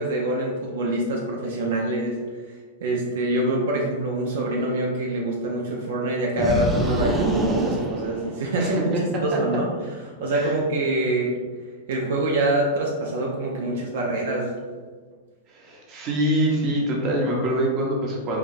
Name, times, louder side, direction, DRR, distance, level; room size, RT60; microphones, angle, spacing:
voice 1, 0.0-2.2 2.8-8.9 9.2-9.7 10.2-11.3 11.9-14.5, right 1 dB, 75° right, -1 dB, 0.7 m, -25 dB
sound 1, 6.4-8.8, right 1 dB, 15° right, 0.5 m, -26 dB
voice 2, 8.6-9.0 10.3-10.5 15.5-18.4, right 1 dB, 35° right, -2 dB, 1.0 m, -24 dB
4.8 x 2.4 x 2.6 m, 1.4 s
hypercardioid pair, 125°, 0 cm